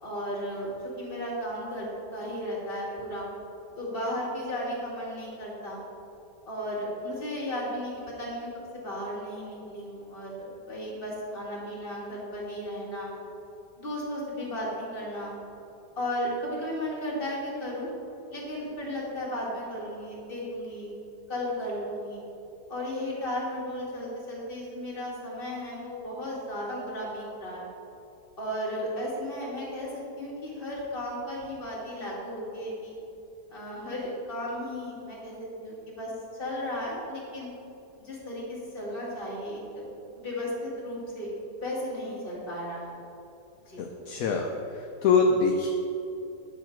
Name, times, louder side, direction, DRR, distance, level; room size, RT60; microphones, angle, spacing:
voice 1, 0.0-3.3 3.8-5.8 6.5-8.5 8.7-10.3 10.6-13.1 13.8-15.3 16.0-17.9 18.3-21.0 21.3-22.2 22.7-27.7 28.4-32.9 33.5-36.1 36.4-37.5 38.0-39.8 40.2-41.3 41.6-43.0 43.7-43.8, equal, 35° left, -5 dB, 2.3 m, -34 dB
voice 2, 43.8-44.5 44.7-45.7, left 4 dB, 65° left, 2 dB, 1.0 m, -24 dB
8.9 x 7.0 x 4.5 m, 2.8 s
omnidirectional pair, 1.8 m